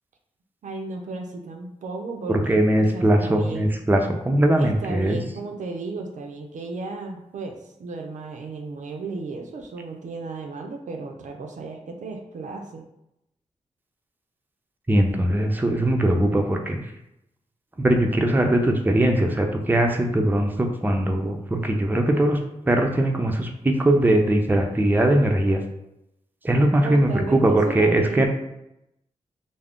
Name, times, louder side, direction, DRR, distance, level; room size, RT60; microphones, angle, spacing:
voice 1, 0.6-3.7 4.6-7.5 7.8-12.8 26.8-28.3, right 3 dB, 70° right, 3 dB, 0.4 m, -34 dB
voice 2, 2.3-5.2 14.9-16.8 17.8-22.4 22.7-25.6 26.4-28.3, right 1 dB, 15° right, 3 dB, 0.5 m, -20 dB
2.4 x 2.0 x 3.5 m, 0.84 s
cardioid pair, 50°, 13 cm